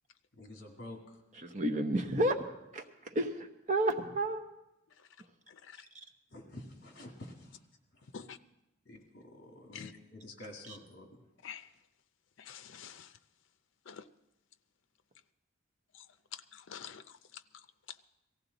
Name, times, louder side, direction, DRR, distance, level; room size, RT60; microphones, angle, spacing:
voice 1, 0.3-1.0 6.3-7.6 8.9-11.2, left 1 dB, 50° left, 2.0 m, -49 dB
voice 2, 1.4-2.4 2.7-2.8 3.1-4.4 10.7-10.8, right 1 dB, 35° right, 1.0 m, -31 dB
voice 3, 5.5-5.8 8.1-8.4 9.7-9.9 11.4-11.7 12.4-13.1 13.9-14.0 15.9-16.1 16.3-17.4, left 7 dB, 70° left, 0.6 m, -47 dB
18.0 x 15.0 x 4.0 m
head